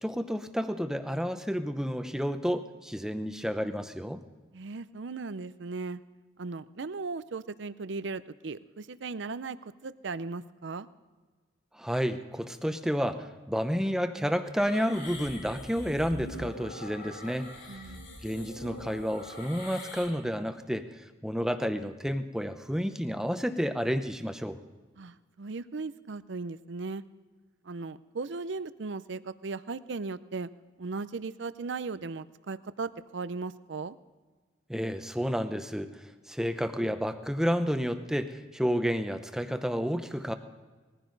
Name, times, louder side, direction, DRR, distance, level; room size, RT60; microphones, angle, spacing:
voice 1, 0.0-4.2 11.7-17.5 18.2-20.9 21.2-24.6 34.7-35.9 36.3-40.3, equal, 5° right, 8 dB, 0.7 m, -30 dB
voice 2, 4.5-6.0 6.4-10.9 17.7-18.1 25.0-27.0 27.7-30.5 30.8-34.0, right 4 dB, 70° right, 14 dB, 0.6 m, -37 dB
sound 1, 14.5-20.1, left 1 dB, 70° left, 6.3 m, -43 dB
20.5 x 15.0 x 4.0 m, 1.3 s
head